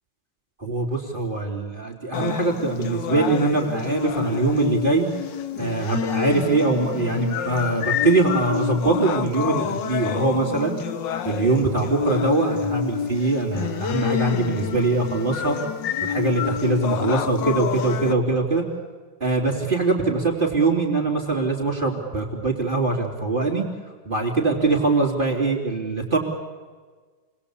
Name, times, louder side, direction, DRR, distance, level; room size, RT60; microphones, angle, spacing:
voice 1, 0.6-5.1 5.6-10.8 11.2-15.6 16.0-18.6 19.2-23.7 24.1-26.2, right 3 dB, 25° right, 0 dB, 3.5 m, -22 dB
sound 1, 2.1-18.1, left 8 dB, 75° left, 1.8 m, -28 dB
29.5 x 21.0 x 8.5 m, 1.4 s
omnidirectional pair, 2.0 m